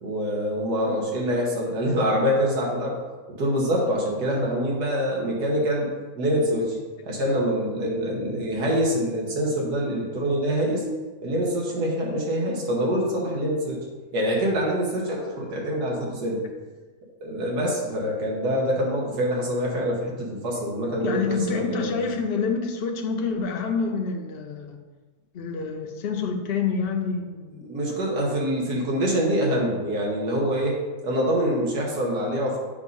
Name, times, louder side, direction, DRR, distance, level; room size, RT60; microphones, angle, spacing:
voice 1, 0.0-3.0 3.4-5.9 6.2-6.8 7.0-10.8 11.2-13.8 14.1-16.4 17.2-21.9 27.6-30.8 31.0-32.6, equal, 90° right, -2 dB, 1.8 m, -25 dB
voice 2, 21.0-24.8 25.3-27.6, left 5 dB, 55° left, 4 dB, 0.6 m, -27 dB
8.1 x 2.7 x 5.3 m, 1.3 s
omnidirectional pair, 1.7 m